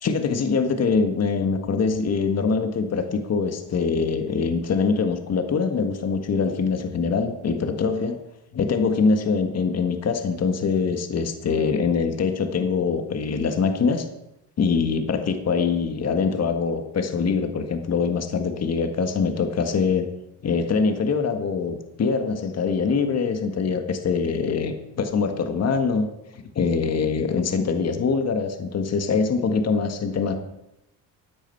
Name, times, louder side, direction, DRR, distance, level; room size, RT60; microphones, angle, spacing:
voice 1, 0.0-8.2 8.5-14.1 14.6-20.1 20.4-26.1 26.3-30.3, left 5 dB, 40° left, 6 dB, 1.7 m, -23 dB
14.0 x 9.1 x 4.6 m, 0.87 s
supercardioid pair, 85°, 41 cm